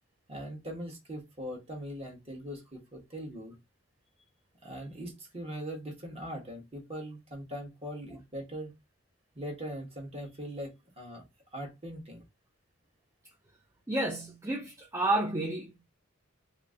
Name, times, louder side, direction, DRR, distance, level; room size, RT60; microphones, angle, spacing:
voice 1, 0.3-3.6 4.6-8.7 9.3-11.2 11.5-12.2, equal, 30° right, 1.2 m, -41 dB
voice 2, 13.9-15.7, right 2 dB, 15° right, 0.4 m, -30 dB
2.9 x 2.6 x 3.6 m
head